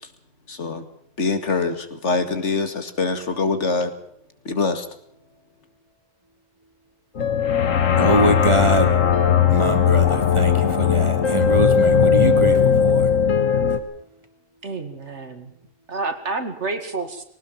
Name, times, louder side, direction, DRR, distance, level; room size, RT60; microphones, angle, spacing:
voice 1, 0.5-0.8 1.2-3.9 4.5-4.9, left 4 dB, 65° left, 9 dB, 2.3 m, -24 dB
sound 1, 7.2-13.8, left 7 dB, 85° left, 1.8 m, -18 dB
voice 2, 7.9-8.9 9.5-13.1, right 1 dB, 25° right, 6 dB, 2.7 m, -23 dB
voice 3, 14.6-15.5 15.9-17.2, right 3 dB, 60° right, 8 dB, 2.5 m, -29 dB
20.5 x 18.5 x 7.3 m, 0.66 s
omnidirectional pair, 1.3 m